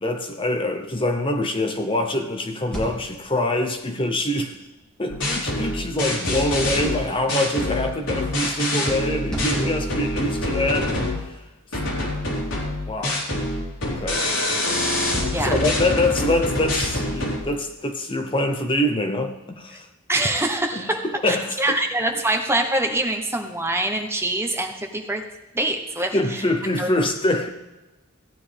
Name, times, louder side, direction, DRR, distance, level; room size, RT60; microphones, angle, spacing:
voice 1, 0.0-4.6 5.0-11.1 12.9-13.2 13.8-14.3 15.4-19.9 20.7-21.8 26.1-27.5, left 1 dB, 25° left, 5 dB, 0.8 m, -24 dB
sound 1, 2.4-16.4, equal, 5° left, 2.7 m, -42 dB
sound 2, 5.1-11.3 11.7-17.4, left 1 dB, 80° left, 3.5 m, -25 dB
voice 2, 20.1-25.2 25.5-26.4 26.8-26.9, right 1 dB, 10° right, 4 dB, 1.0 m, -24 dB
16.0 x 9.5 x 3.4 m, 1.1 s
head